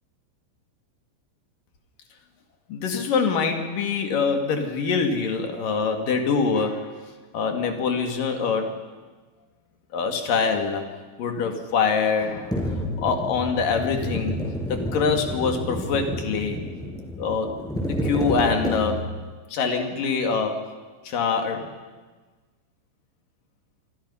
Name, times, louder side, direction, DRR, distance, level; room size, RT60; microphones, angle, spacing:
voice 1, 2.7-7.0 7.3-8.7 9.9-10.9 11.2-14.4 14.7-16.6 17.2-17.6 17.8-19.1 19.5-20.7 21.0-21.7, left 5 dB, 50° left, 4 dB, 3.2 m, -24 dB
sound 1, 12.5-19.2, equal, ahead, 5.2 m, -29 dB
27.0 x 24.5 x 5.7 m, 1.3 s
omnidirectional pair, 5.8 m